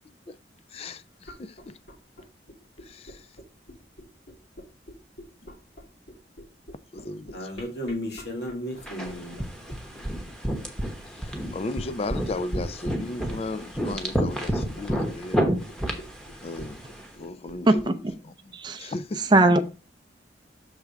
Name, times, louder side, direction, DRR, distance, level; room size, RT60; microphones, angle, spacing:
voice 1, 0.7-1.8 2.8-3.2 6.9-7.5 11.2-15.4 16.4-16.8 17.2-17.8 18.8-19.2, left 2 dB, 35° left, 0.3 m, -35 dB
sound 1, 1.1-18.1, equal, 85° left, 2.1 m, -46 dB
voice 2, 7.3-9.5, left 1 dB, 65° left, 1.9 m, -34 dB
sound 2, 8.9-17.0, equal, 5° left, 1.0 m, -30 dB
voice 3, 17.6-18.1 18.5-19.6, right 2 dB, 25° right, 0.5 m, -21 dB
6.5 x 3.5 x 5.9 m
head